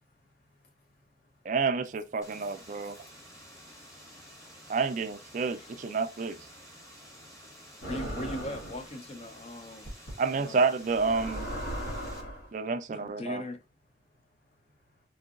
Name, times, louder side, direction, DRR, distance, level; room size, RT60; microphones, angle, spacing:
voice 1, 0.3-1.5 2.3-4.7 7.0-7.3 12.2-12.4 14.5-14.8, left 3 dB, 55° left, 1.1 m, -66 dB
voice 2, 1.5-3.0 4.7-6.4 10.2-11.5 12.5-13.4, right 4 dB, 40° right, 0.3 m, -29 dB
sound 1, 2.2-12.2, equal, 15° left, 0.8 m, -51 dB
sound 2, 7.8-8.9 9.9-10.1 10.9-12.5, equal, 70° left, 1.4 m, -37 dB
voice 3, 7.8-10.0 10.3-10.6 12.9-13.6, left 1 dB, 35° left, 0.5 m, -39 dB
3.7 x 2.7 x 2.4 m
head